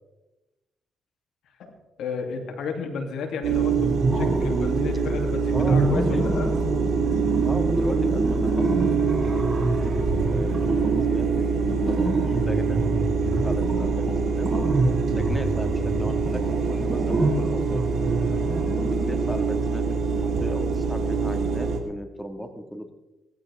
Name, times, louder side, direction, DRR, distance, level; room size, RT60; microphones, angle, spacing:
voice 1, 2.0-6.5 15.0-15.2 18.3-18.6, left 5 dB, 85° left, 3 dB, 3.0 m, -33 dB
sound 1, 3.4-21.8, right 5 dB, 65° right, 3.8 m, -25 dB
sound 2, 3.8-5.1 5.5-19.4, right 2 dB, 20° right, 5.8 m, -27 dB
voice 2, 5.5-6.4 7.4-12.8 13.2-14.5 15.1-17.9 18.8-22.9, equal, ahead, 5 dB, 2.0 m, -35 dB
19.0 x 15.0 x 3.7 m, 1.0 s
cardioid pair, 95°, 0 cm